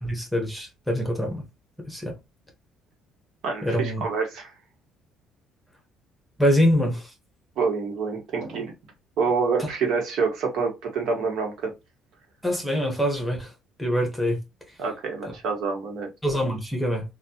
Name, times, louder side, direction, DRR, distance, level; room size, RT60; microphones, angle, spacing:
voice 1, 0.0-1.4 1.9-2.1 3.6-4.0 6.4-7.1 9.6-9.7 12.4-13.5 13.8-14.4 16.2-17.0, equal, ahead, 1.3 m, -24 dB
voice 2, 3.4-4.5 7.6-8.7 9.2-11.7 14.8-16.1, right 5 dB, 65° right, 1.3 m, -27 dB
3.3 x 2.4 x 2.8 m
cardioid pair, 125°, 0 cm